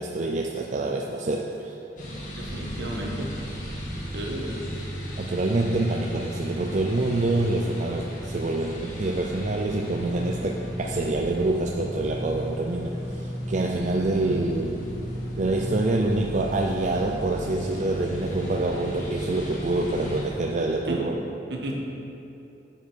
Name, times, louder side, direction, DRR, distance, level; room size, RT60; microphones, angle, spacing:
voice 1, 0.0-1.7 5.2-14.8 15.4-21.2, right 2 dB, 40° right, 0 dB, 0.5 m, -26 dB
sound 1, 2.0-20.3, equal, 45° left, 1.8 m, -34 dB
voice 2, 2.4-3.3 4.1-4.6 20.9-21.0 21.5-21.7, right 1 dB, 70° right, -1 dB, 1.5 m, -33 dB
9.3 x 7.8 x 4.5 m, 2.8 s
head